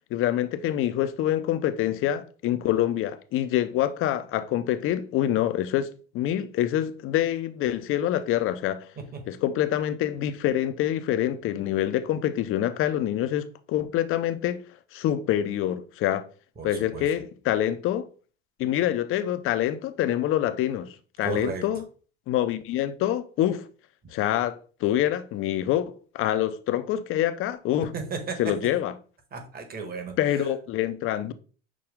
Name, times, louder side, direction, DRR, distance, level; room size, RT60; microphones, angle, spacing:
voice 1, 0.1-8.9 9.3-14.6 14.9-16.2 16.6-18.0 18.6-21.8 22.3-23.7 24.1-27.9 28.4-28.9 30.2-31.3, left 12 dB, 40° left, 0.6 m, -26 dB
voice 2, 21.2-21.7 27.9-28.4 29.3-30.5, right 4 dB, 30° right, 1.4 m, -34 dB
6.1 x 2.2 x 3.6 m
supercardioid pair, 100°, 32 cm